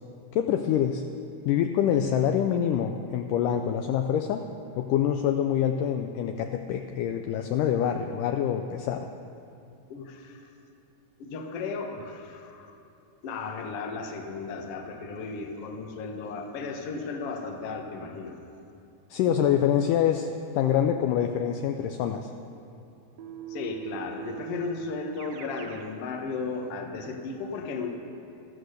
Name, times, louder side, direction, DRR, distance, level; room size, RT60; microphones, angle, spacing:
voice 1, 0.3-1.0 1.5-4.4 4.8-9.1 19.1-22.3, left 9 dB, 80° left, 5 dB, 2.0 m, -25 dB
voice 2, 9.9-10.5 11.2-12.7 13.2-18.4 23.5-27.9, left 4 dB, 55° left, 4 dB, 1.8 m, -35 dB
Keyboard (musical), 23.2-25.9, right 10 dB, 70° right, 1.7 m, -40 dB
14.5 x 13.5 x 6.5 m, 2.8 s
omnidirectional pair, 4.1 m